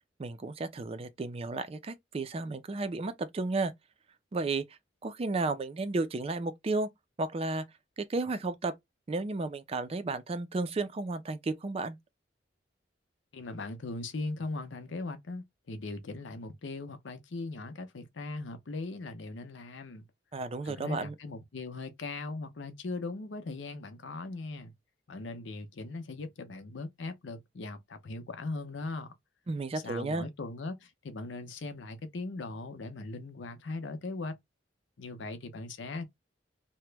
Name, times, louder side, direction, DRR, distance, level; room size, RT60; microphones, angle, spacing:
voice 1, 0.2-3.7 4.3-4.6 5.0-6.9 7.2-7.6 8.0-8.7 9.1-12.0 20.3-21.1 29.5-30.3, right 3 dB, 35° right, 0.4 m, -33 dB
voice 2, 13.3-20.1 20.6-24.7 25.1-29.1 29.8-34.3 35.0-36.0, left 3 dB, 85° left, 0.7 m, -39 dB
2.9 x 2.1 x 3.3 m
head